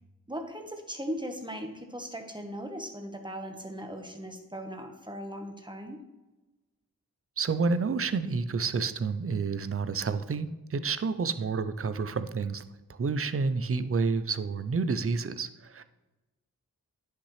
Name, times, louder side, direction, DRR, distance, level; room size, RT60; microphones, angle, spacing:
voice 1, 0.3-6.0, equal, 10° right, 4 dB, 1.3 m, -38 dB
voice 2, 7.4-12.6 12.9-15.8, right 4 dB, 40° right, 12 dB, 0.5 m, -29 dB
10.0 x 5.9 x 3.2 m, 1.1 s
wide cardioid pair, 45°, 36 cm